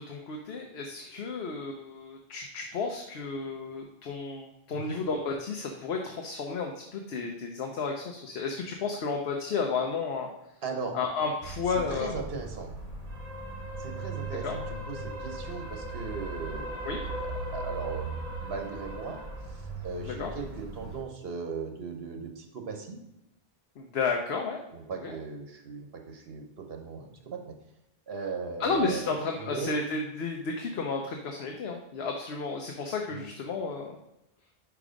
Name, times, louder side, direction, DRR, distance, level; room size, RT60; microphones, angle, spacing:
voice 1, 0.0-10.3 10.9-12.2 14.4-14.6 16.8-17.0 20.0-20.3 23.8-24.6 25.0-25.2 28.6-34.0, left 4 dB, 80° left, 2 dB, 1.0 m, -32 dB
voice 2, 10.6-11.0 11.7-12.7 13.8-16.7 17.5-19.2 19.8-23.0 24.7-27.5 28.1-29.8 33.1-33.2, right 5 dB, 70° right, 4 dB, 1.2 m, -38 dB
sound 1, 11.4-21.0, right 2 dB, 40° right, 1.1 m, -38 dB
5.0 x 4.7 x 5.0 m, 0.87 s
omnidirectional pair, 1.0 m